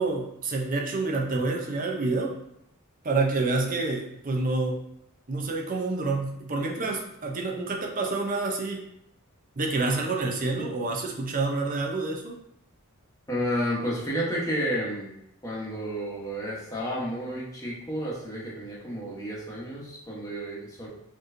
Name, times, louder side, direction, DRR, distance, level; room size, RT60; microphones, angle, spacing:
voice 1, 0.0-2.3 3.0-4.8 5.3-8.8 9.6-12.4, right 3 dB, 40° right, 1 dB, 0.6 m, -28 dB
voice 2, 13.3-15.1 15.4-20.9, equal, 15° left, -6 dB, 1.1 m, -31 dB
4.4 x 3.0 x 2.6 m, 0.80 s
head